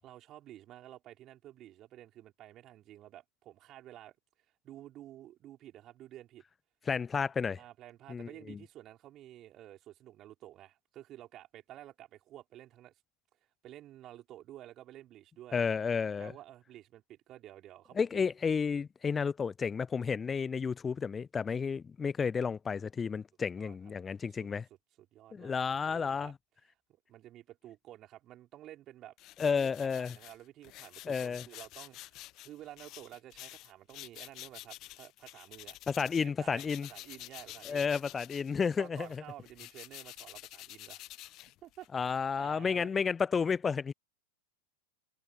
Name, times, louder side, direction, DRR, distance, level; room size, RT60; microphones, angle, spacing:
voice 1, 0.0-4.1 4.6-6.4 7.6-12.9 13.6-15.6 16.2-18.3 23.6-23.8 24.3-24.4 25.0-26.3 26.9-35.8 36.2-37.9 38.8-43.0, right 13 dB, 35° right, 5.1 m, -52 dB
voice 2, 6.9-7.6 8.1-8.6 15.5-16.3 18.0-24.6 25.3-26.3 29.4-30.1 31.1-31.4 35.9-36.9 37.7-39.1 41.9-43.9, left 6 dB, 15° left, 0.7 m, -32 dB
sound 1, 29.2-36.3 36.5-42.0, left 17 dB, 35° left, 1.3 m, -49 dB
figure-of-eight pair, 90°, 0 cm